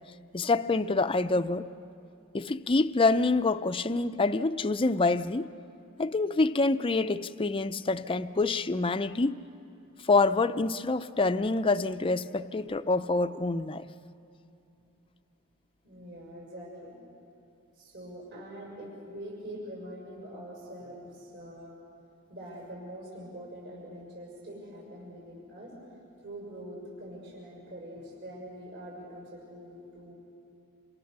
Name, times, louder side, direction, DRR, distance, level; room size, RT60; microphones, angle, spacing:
voice 1, 0.3-1.7 2.3-5.5 6.0-9.4 10.0-13.9, left 3 dB, 25° left, 0.5 m, -26 dB
voice 2, 15.8-17.0 17.7-21.7 22.3-25.7 26.2-30.1, equal, 55° right, 6.6 m, -44 dB
28.0 x 28.0 x 6.7 m
head